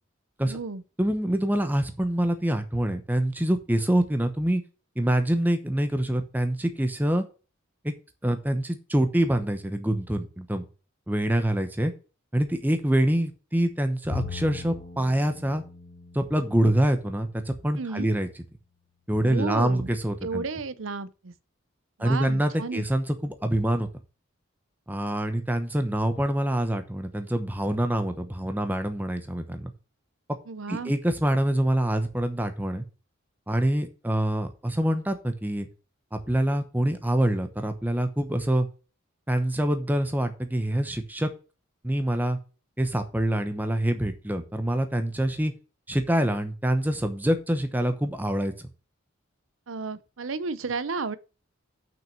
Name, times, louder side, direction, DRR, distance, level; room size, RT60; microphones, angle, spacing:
voice 1, 0.4-0.8 17.8-18.1 19.2-19.9 20.2-21.3 22.0-22.8 30.5-30.9 49.7-51.2, right 4 dB, 75° right, 0.7 m, -32 dB
voice 2, 1.0-4.6 5.0-7.2 7.8-7.9 8.2-10.6 11.1-11.9 12.3-15.6 16.1-18.3 19.1-20.4 22.0-23.9 24.9-29.7 30.7-32.8 33.5-35.7 36.1-38.7 39.3-41.3 41.8-42.4 42.8-45.5 45.9-48.7, right 1 dB, 10° right, 0.9 m, -25 dB
Bowed string instrument, 14.1-17.5, left 4 dB, 35° left, 1.8 m, -40 dB
6.1 x 5.9 x 7.1 m
head